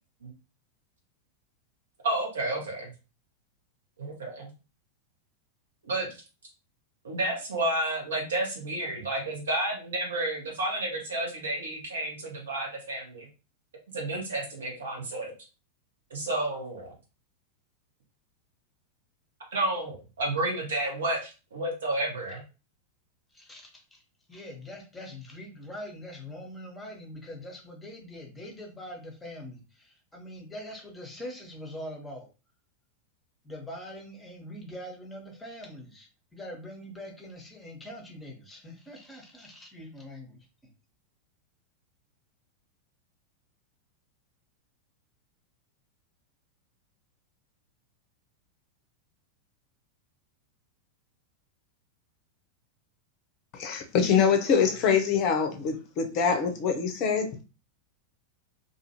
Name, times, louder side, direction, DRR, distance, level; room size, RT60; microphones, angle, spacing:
voice 1, 2.0-2.9 4.0-4.5 5.8-6.1 7.0-13.3 13.9-15.3 16.1-16.9 19.5-22.4, right 2 dB, 65° right, 1.0 m, -31 dB
voice 2, 23.3-24.0 24.3-32.3 33.4-40.7, left 1 dB, 10° left, 0.9 m, -43 dB
voice 3, 53.5-57.4, left 6 dB, 40° left, 0.6 m, -24 dB
2.6 x 2.5 x 2.8 m
figure-of-eight pair, 90°, 0 cm